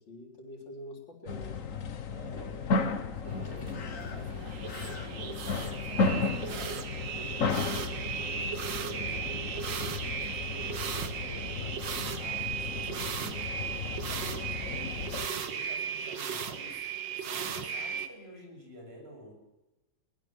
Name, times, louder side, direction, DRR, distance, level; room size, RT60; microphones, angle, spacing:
voice 1, 0.0-1.6 2.1-2.6 3.1-4.3 7.8-8.0 15.8-16.0, equal, 90° left, 3 dB, 4.3 m, -48 dB
sound 1, 1.3-15.3, left 4 dB, 50° left, 1.6 m, -34 dB
voice 2, 2.1-2.6 3.3-11.8 12.2-14.9 15.1-16.8 17.2-19.3, right 1 dB, 30° right, 1 dB, 6.9 m, -49 dB
sound 2, 3.2-18.1, right 7 dB, 80° right, 2.1 m, -36 dB
22.5 x 19.0 x 7.5 m, 1.1 s
omnidirectional pair, 2.0 m